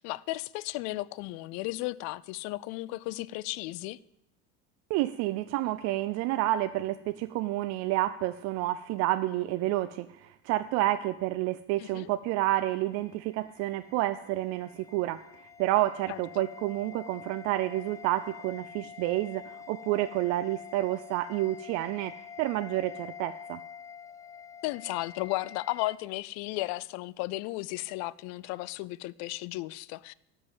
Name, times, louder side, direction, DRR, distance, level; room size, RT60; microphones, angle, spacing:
voice 1, 0.0-4.0 11.8-12.1 16.1-16.5 24.6-30.1, left 19 dB, 60° left, 0.4 m, -35 dB
voice 2, 4.9-15.2 15.6-23.6, right 16 dB, 60° right, 0.5 m, -29 dB
sound 1, 12.9-26.0, left 7 dB, 10° left, 0.5 m, -47 dB
13.0 x 5.4 x 7.9 m
supercardioid pair, 105°, 31 cm